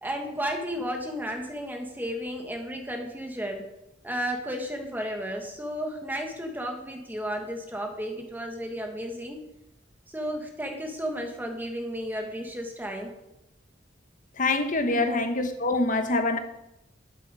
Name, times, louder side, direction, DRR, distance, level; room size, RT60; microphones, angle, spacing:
voice 1, 0.0-3.7 4.0-9.4 10.1-13.1 14.8-15.0, equal, 10° right, 1.5 m, -33 dB
voice 2, 14.4-16.4, left 2 dB, 45° left, 1.4 m, -25 dB
12.0 x 10.0 x 4.9 m
head